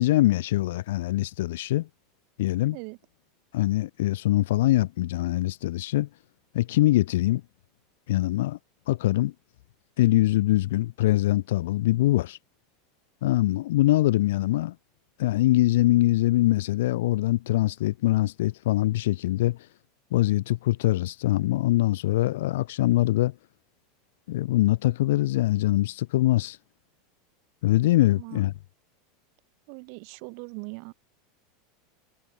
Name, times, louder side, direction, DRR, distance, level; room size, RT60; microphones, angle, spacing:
voice 1, 0.0-1.9 2.4-2.8 3.5-6.1 6.5-7.4 8.1-8.6 8.9-9.3 10.0-12.4 13.2-14.7 15.2-19.6 20.1-23.3 24.3-26.6 27.6-28.5, left 16 dB, 80° left, 0.7 m, -23 dB
voice 2, 28.1-28.5 29.7-30.9, right 40 dB or more, 55° right, 3.7 m, -40 dB
supercardioid pair, 150°, 0 cm